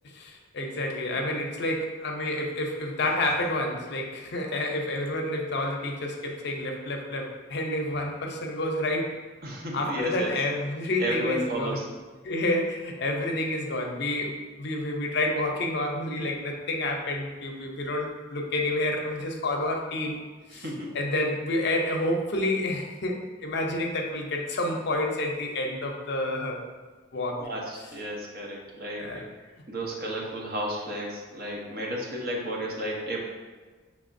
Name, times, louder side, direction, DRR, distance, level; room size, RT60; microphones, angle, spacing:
voice 1, 0.0-9.2 9.7-11.9 12.2-20.2 20.5-20.6 20.9-26.6 27.1-27.5 29.0-29.2, left 1 dB, 60° left, 1 dB, 0.6 m, -29 dB
voice 2, 9.4-10.3 11.0-11.8 20.5-20.9 27.4-29.2 29.7-33.2, equal, 55° right, -2 dB, 0.8 m, -32 dB
5.9 x 3.4 x 2.6 m, 1.4 s
head